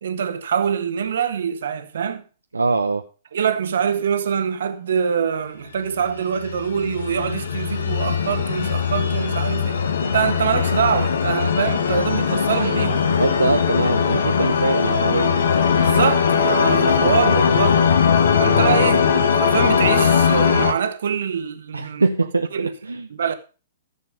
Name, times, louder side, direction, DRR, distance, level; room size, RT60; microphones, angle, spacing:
voice 1, 0.0-2.2 3.3-13.1 15.8-17.8 18.4-22.1 22.5-22.7 23.1-23.3, right 7 dB, 60° right, 1.5 m, -24 dB
voice 2, 2.5-3.0 13.2-15.3 21.7-23.1, right 3 dB, 80° right, 0.8 m, -22 dB
sound 1, 6.4-20.7, left 7 dB, 65° left, 1.6 m, -19 dB
14.0 x 7.4 x 5.1 m
figure-of-eight pair, 110°, 0 cm